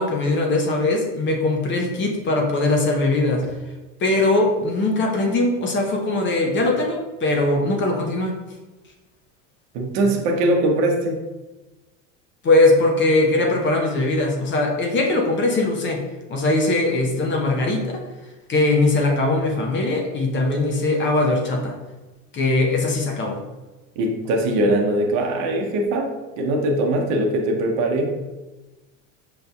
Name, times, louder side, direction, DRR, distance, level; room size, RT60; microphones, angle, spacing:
voice 1, 0.0-3.6 4.0-8.4 12.4-16.0 16.3-18.0 18.5-21.7 22.3-23.4, left 2 dB, 30° left, 1 dB, 0.7 m, -20 dB
voice 2, 9.7-11.2 24.0-26.1 26.4-28.2, right 1 dB, 60° right, 2 dB, 0.8 m, -21 dB
5.7 x 2.6 x 2.3 m, 1.1 s
supercardioid pair, 110°, 39 cm